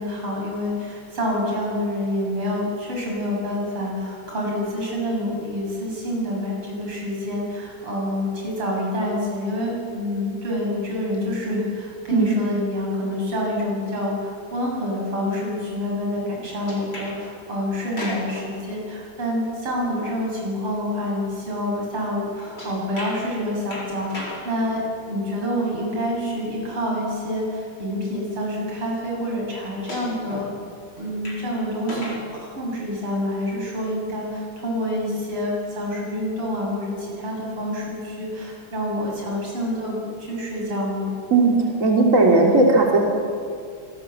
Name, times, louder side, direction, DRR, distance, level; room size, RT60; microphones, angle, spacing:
voice 1, 0.0-24.8 25.1-30.5 31.0-41.1, left 1 dB, 85° right, -2 dB, 8.0 m, -27 dB
sound 1, 16.7-17.2 17.8-18.5 22.6-23.2 23.7-24.5 26.3-26.4 27.6-27.7 29.9-30.5 31.0-31.4 31.8-32.2 32.9-33.0, left 2 dB, 60° left, 6.0 m, -35 dB
voice 2, 41.8-43.0, right 3 dB, 35° right, -1 dB, 3.2 m, -16 dB
26.5 x 19.0 x 7.4 m, 2.3 s
omnidirectional pair, 2.4 m